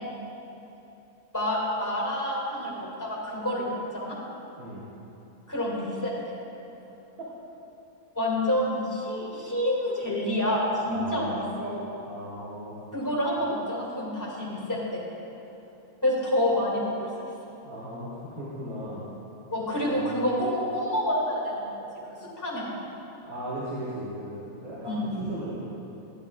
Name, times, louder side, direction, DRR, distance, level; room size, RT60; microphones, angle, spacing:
voice 1, 1.3-4.2 5.5-6.4 8.2-11.9 12.9-15.0 16.0-17.1 19.5-22.8 24.8-25.1, left 1 dB, 10° left, -5 dB, 2.0 m, -28 dB
voice 2, 10.9-11.5 12.1-12.8 17.6-19.1 19.8-20.3 23.2-25.7, right 1 dB, 65° right, -10 dB, 2.1 m, -37 dB
12.5 x 11.0 x 2.3 m, 2.9 s
omnidirectional pair, 1.7 m